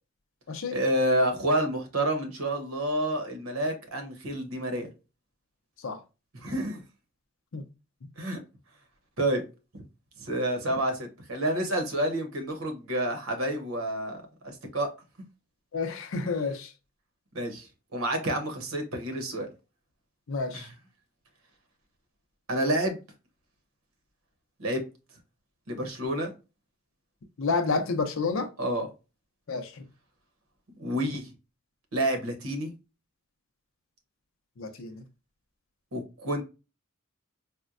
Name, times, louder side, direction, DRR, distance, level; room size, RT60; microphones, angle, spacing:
voice 1, 0.7-4.9 6.3-6.8 8.2-8.4 9.2-9.4 10.2-14.9 17.3-17.7 17.9-19.5 20.5-20.7 22.5-23.0 24.6-24.8 25.7-26.3 28.6-28.9 30.8-31.3 31.9-32.7 35.9-36.4, right 1 dB, 80° right, 0.9 m, -29 dB
voice 2, 15.7-16.7 20.3-20.7 27.4-28.5 29.5-29.9 34.6-35.0, left 4 dB, 65° left, 0.5 m, -30 dB
4.3 x 2.1 x 2.4 m
head